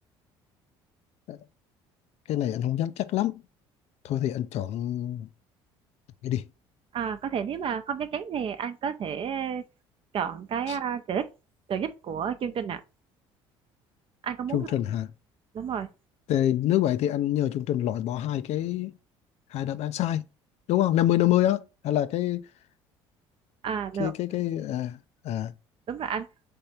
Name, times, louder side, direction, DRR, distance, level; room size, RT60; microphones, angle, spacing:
voice 1, 2.3-3.4 4.0-5.3 6.2-6.5 10.7-10.8 14.5-15.1 16.3-18.9 19.5-20.3 20.7-22.4 24.0-25.5, left 12 dB, 60° left, 0.5 m, -26 dB
voice 2, 6.9-9.6 10.1-11.3 11.7-12.8 14.2-14.7 15.5-15.9 23.6-24.1 25.9-26.3, right 7 dB, 45° right, 0.7 m, -31 dB
3.5 x 3.4 x 4.2 m
supercardioid pair, 75°, 12 cm